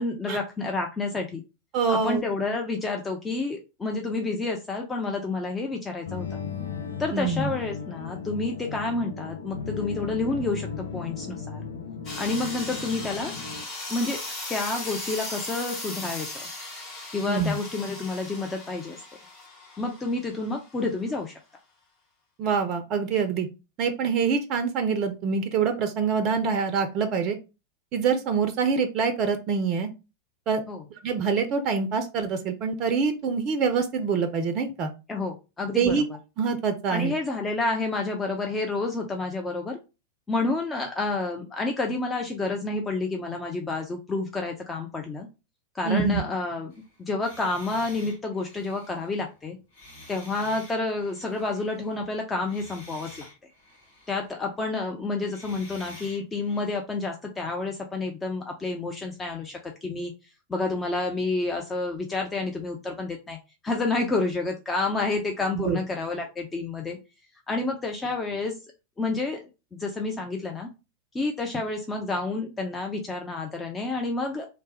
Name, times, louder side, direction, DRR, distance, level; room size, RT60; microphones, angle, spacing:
voice 1, 0.0-1.4 2.0-6.4 7.0-11.6 12.2-13.3 13.9-14.2 14.5-16.5 17.1-19.0 19.8-21.3 30.7-30.8 35.1-36.0 36.9-39.8 40.3-45.3 45.7-46.7 47.0-49.6 50.1-53.3 54.1-60.1 60.5-63.4 63.6-67.0 67.5-68.6 69.0-70.7 71.1-74.5, left 3 dB, 15° left, 2 dB, 0.5 m, -29 dB
voice 2, 1.7-2.2 7.1-7.5 17.3-17.6 22.4-23.5 23.8-27.4 27.9-29.9 30.5-30.6 31.0-34.9 35.8-36.0 36.4-37.1 45.8-46.2 65.6-65.8, right 5 dB, 35° right, 7 dB, 0.5 m, -25 dB
sound 1, 6.1-13.6, left 6 dB, 70° left, 0.6 m, -36 dB
sound 2, 12.0-20.6, left 2 dB, 30° left, 1.5 m, -37 dB
sound 3, 46.7-52.1 52.4-54.4 55.2-56.8, left 1 dB, 55° left, 1.6 m, -49 dB
3.2 x 2.0 x 4.1 m, 0.29 s
figure-of-eight pair, 90°, 0 cm